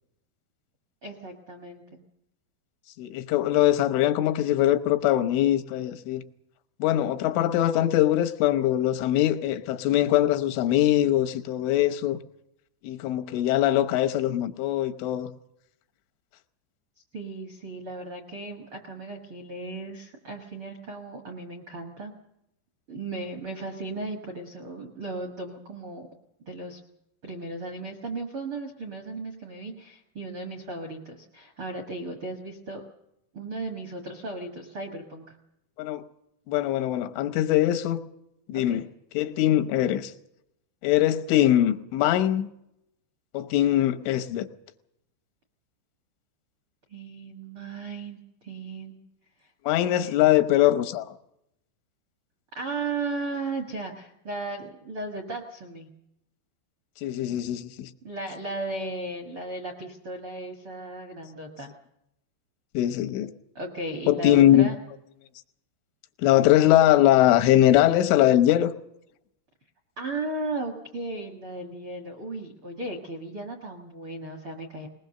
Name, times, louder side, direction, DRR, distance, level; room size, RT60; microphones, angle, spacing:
voice 1, 1.0-2.0 17.1-22.1 22.9-26.1 26.4-26.8 27.2-32.8 33.3-35.4 38.5-38.8 46.9-48.2 48.4-49.0 50.0-50.1 52.5-55.9 58.0-61.8 63.5-64.8 70.0-74.9, right 2 dB, 60° right, 1.3 m, -36 dB
voice 2, 3.0-6.2 6.8-12.2 12.8-15.3 35.8-36.0 36.5-38.0 38.5-38.8 39.2-40.1 40.8-42.5 43.3-44.5 49.7-51.1 57.0-57.9 62.8-63.3 64.1-64.7 66.2-68.7, left 13 dB, 85° left, 3.4 m, -22 dB
20.5 x 20.0 x 6.6 m
omnidirectional pair, 5.5 m